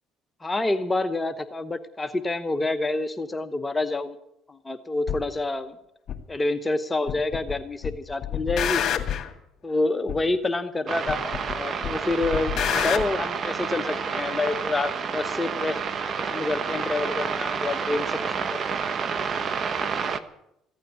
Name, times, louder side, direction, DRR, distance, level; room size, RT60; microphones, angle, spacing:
voice 1, 0.4-4.2 4.5-5.8 6.3-8.8 9.6-15.8 16.2-18.8, left 2 dB, 20° left, 9 dB, 0.9 m, -28 dB
sound 1, 5.1-5.2 6.1-6.2 7.1-7.5 7.8-9.3 10.1-10.2 11.1-11.5 11.8-13.0, left 10 dB, 50° left, 2.0 m, -27 dB
sound 2, 10.9-20.2, right 6 dB, 45° right, 1.1 m, -29 dB
15.5 x 8.9 x 9.3 m, 0.82 s
supercardioid pair, 80°, 0 cm